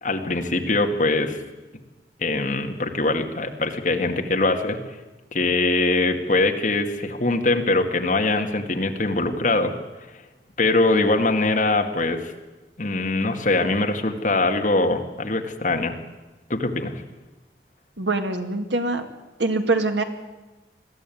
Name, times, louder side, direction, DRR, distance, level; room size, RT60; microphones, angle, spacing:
voice 1, 0.0-1.4 2.2-5.0 5.3-9.7 10.6-12.3 12.8-16.0 16.5-17.0, left 2 dB, 45° left, 4 dB, 2.1 m, -22 dB
voice 2, 18.0-19.1 19.4-20.0, right 2 dB, 90° right, 6 dB, 2.2 m, -24 dB
21.5 x 15.0 x 9.3 m, 1.1 s
head